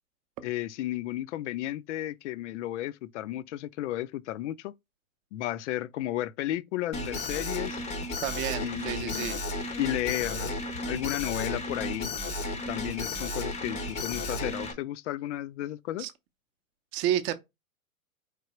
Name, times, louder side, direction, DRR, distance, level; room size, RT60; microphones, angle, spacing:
voice 1, 0.4-4.7 5.3-7.8 8.6-9.4 9.8-10.6 10.9-12.2 12.7-16.1, left 14 dB, 60° left, 0.5 m, -33 dB
Alarm, 6.9-14.7, left 2 dB, 15° left, 0.6 m, -34 dB
voice 2, 8.2-9.4 16.0-16.1 16.9-17.3, right 11 dB, 30° right, 0.6 m, -30 dB
4.6 x 3.3 x 2.9 m
hypercardioid pair, 115°, 42 cm